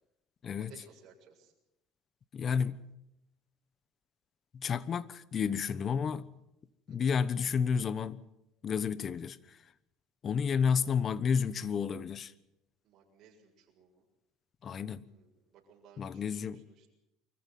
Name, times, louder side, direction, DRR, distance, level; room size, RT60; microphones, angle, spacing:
voice 1, 0.7-1.5 6.9-7.2 12.8-14.1 15.1-16.9, right 6 dB, 55° right, 6.9 m, -60 dB
voice 2, 2.3-2.9 4.5-6.3 6.9-8.2 8.6-9.6 10.2-12.3 14.6-15.1 16.0-16.6, left 6 dB, 40° left, 1.1 m, -31 dB
24.0 x 15.0 x 9.4 m
supercardioid pair, 100°, 0 cm